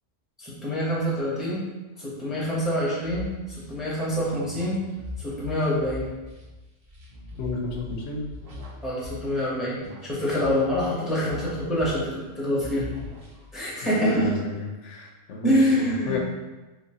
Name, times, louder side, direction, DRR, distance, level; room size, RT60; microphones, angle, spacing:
voice 1, 0.4-1.6 2.0-4.8 5.2-6.1 8.8-9.8 10.0-12.9 13.5-14.3 15.4-16.2, equal, ahead, -6 dB, 0.8 m, -26 dB
sound 1, 3.0-9.5 9.8-12.3 12.6-13.7, left 2 dB, 30° right, 1.2 m, -41 dB
voice 2, 7.4-8.3 13.8-16.2, left 4 dB, 75° left, 0 dB, 1.0 m, -31 dB
4.7 x 2.4 x 2.9 m, 1.2 s
omnidirectional pair, 1.3 m